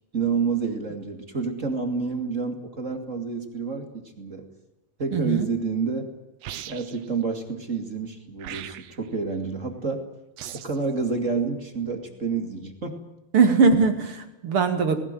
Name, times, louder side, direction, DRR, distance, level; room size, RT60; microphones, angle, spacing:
voice 1, 0.1-4.5 5.0-6.1 6.6-10.1 10.5-13.0, right 4 dB, 25° right, 5 dB, 2.1 m, -29 dB
voice 2, 5.1-5.5 13.3-15.0, right 5 dB, 40° right, 7 dB, 2.7 m, -20 dB
sound 1, 6.4-7.1 8.4-9.1 10.4-10.8, right 11 dB, 90° right, 1.5 m, -39 dB
20.0 x 18.0 x 9.2 m, 0.98 s
omnidirectional pair, 4.4 m